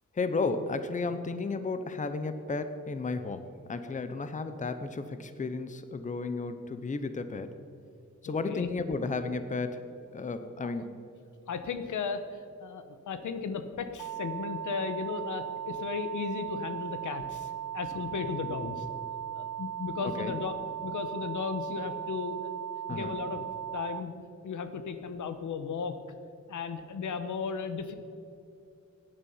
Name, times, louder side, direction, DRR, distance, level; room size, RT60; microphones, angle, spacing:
voice 1, 0.2-7.5 8.2-9.8 10.1-11.0 20.2-20.4 22.9-23.1, left 3 dB, 25° left, 10 dB, 0.8 m, -33 dB
voice 2, 8.2-8.7 10.6-10.7 11.5-18.9 19.3-20.5 20.8-22.5 22.9-23.4 23.7-24.1 24.4-26.0 26.5-28.0, left 5 dB, 85° left, 9 dB, 1.1 m, -35 dB
sound 1, 14.0-24.0, right 12 dB, 80° right, 0.7 m, -38 dB
16.5 x 10.0 x 5.6 m, 2.6 s
wide cardioid pair, 145°, 29 cm